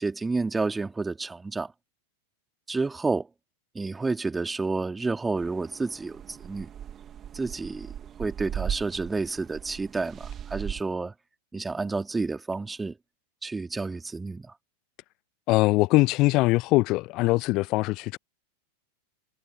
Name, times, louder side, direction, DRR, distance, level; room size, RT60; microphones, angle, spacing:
voice 1, 0.0-1.7 2.7-3.3 3.8-6.7 7.3-7.9 8.2-11.1 11.5-12.9 13.4-14.5, right 3 dB, 10° right, 3.6 m, -30 dB
sound 1, 5.4-10.8, right 9 dB, 25° right, 3.0 m, -38 dB
voice 2, 15.5-18.2, left 21 dB, 40° left, 0.4 m, -22 dB
figure-of-eight pair, 90°, 0 cm